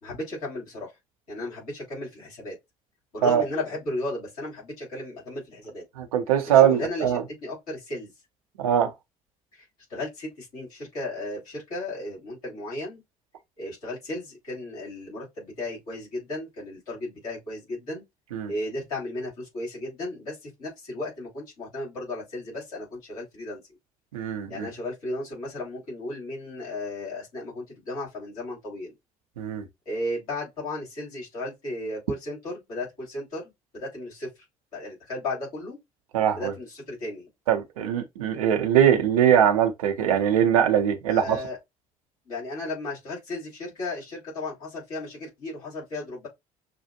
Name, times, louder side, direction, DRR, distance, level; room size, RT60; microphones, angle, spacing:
voice 1, 0.0-0.9 1.3-2.6 3.1-5.8 6.5-7.1 7.4-8.1 9.5-13.0 13.6-18.0 18.5-23.6 24.5-28.9 29.8-34.4 34.7-35.8 36.4-37.3 41.1-41.6 42.2-46.3, left 1 dB, 80° left, 3.0 m, -35 dB
voice 2, 6.0-7.2 8.6-8.9 18.3-18.5 24.1-24.7 29.4-29.6 36.1-36.4 37.5-41.2, right 9 dB, 80° right, 0.7 m, -21 dB
6.6 x 2.4 x 2.7 m
figure-of-eight pair, 50°, 18 cm